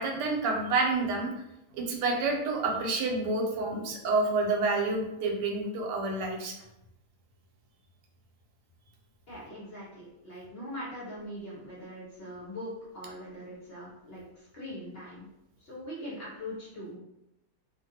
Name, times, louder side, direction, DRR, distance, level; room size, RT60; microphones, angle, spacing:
voice 1, 0.0-1.3 1.7-6.5, right 3 dB, 90° right, 1 dB, 1.2 m, -28 dB
voice 2, 9.3-15.3 15.6-17.0, equal, 50° left, -7 dB, 0.8 m, -42 dB
2.7 x 2.5 x 2.7 m, 0.88 s
omnidirectional pair, 1.8 m